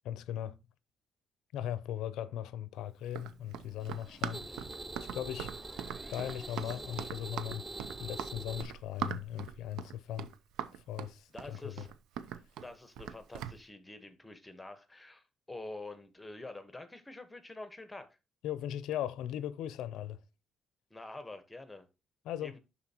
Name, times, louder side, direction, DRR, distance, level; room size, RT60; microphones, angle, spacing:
voice 1, 0.0-0.6 1.5-4.7 5.0-5.5 6.1-7.7 8.0-10.3 10.7-11.9 18.4-20.2 22.2-22.6, left 11 dB, 85° left, 0.5 m, -39 dB
Run, 3.1-13.6, right 9 dB, 90° right, 0.5 m, -41 dB
sound 1, 3.2-8.0, right 2 dB, 40° right, 2.3 m, -61 dB
sound 2, 3.8-8.6, right 2 dB, 15° right, 0.5 m, -44 dB
voice 2, 11.3-11.9 12.6-18.1 20.9-21.9 22.4-22.6, left 2 dB, 15° left, 1.1 m, -47 dB
11.0 x 4.1 x 2.9 m
cardioid pair, 90°, 0 cm